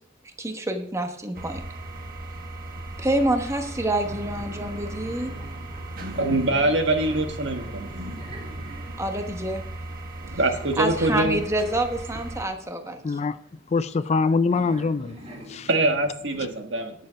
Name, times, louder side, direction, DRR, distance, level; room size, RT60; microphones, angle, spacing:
voice 1, 0.4-1.6 3.0-5.3 9.0-9.6 10.8-13.0, right 1 dB, 15° right, 1.1 m, -27 dB
sound 1, 1.3-12.5, right 2 dB, 50° right, 1.2 m, -37 dB
sound 2, 2.0-2.7 2.9-3.0 3.4-11.6 12.2-14.2 14.5-16.5, equal, 35° right, 2.2 m, -44 dB
voice 2, 6.1-7.9 10.2-11.4 15.7-16.9, right 2 dB, 70° right, 1.5 m, -23 dB
voice 3, 13.0-13.4 13.7-15.2 15.5-15.7, left 4 dB, 35° left, 0.3 m, -23 dB
10.5 x 6.9 x 5.7 m
head